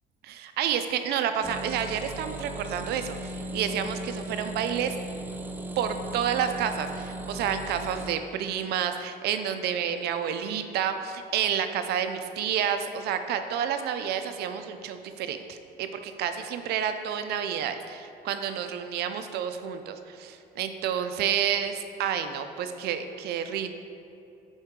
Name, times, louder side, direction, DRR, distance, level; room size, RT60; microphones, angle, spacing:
voice 1, 0.2-5.0 5.8-23.7, right 8 dB, 75° right, 8 dB, 0.5 m, -30 dB
sound 1, 1.4-8.1, right 2 dB, 10° right, 0.4 m, -37 dB
6.2 x 4.7 x 3.7 m, 2.7 s
cardioid pair, 110°, 17 cm